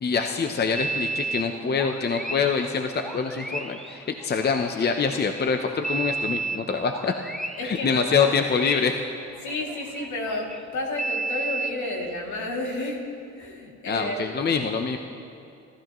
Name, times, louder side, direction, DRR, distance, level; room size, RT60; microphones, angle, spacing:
voice 1, 0.0-7.1 7.6-8.9 13.9-15.0, left 5 dB, 35° left, 5 dB, 0.8 m, -25 dB
sound 1, 0.7-5.5 5.8-10.6 11.0-12.6 13.4-13.5, right 3 dB, ahead, 0.9 m, -33 dB
voice 2, 7.6-8.3 9.4-13.0 13.4-14.3, left 2 dB, 70° left, -1 dB, 2.7 m, -31 dB
26.0 x 13.0 x 3.1 m, 2.6 s
cardioid pair, 90°, 30 cm